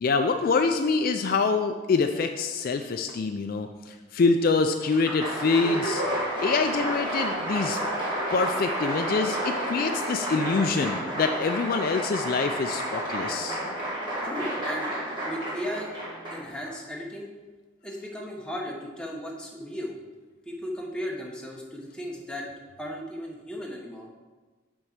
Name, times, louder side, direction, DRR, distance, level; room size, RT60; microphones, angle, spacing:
voice 1, 0.0-6.0 6.4-7.8 8.3-13.6, left 4 dB, 50° left, 6 dB, 0.3 m, -25 dB
Applause, 4.8-16.7, equal, 25° right, 2.0 m, -31 dB
voice 2, 14.2-14.9 15.2-15.9 16.3-17.3 17.8-20.0 20.5-22.5 22.8-24.1, equal, 5° left, -1 dB, 0.9 m, -35 dB
6.1 x 4.5 x 6.5 m, 1.3 s
head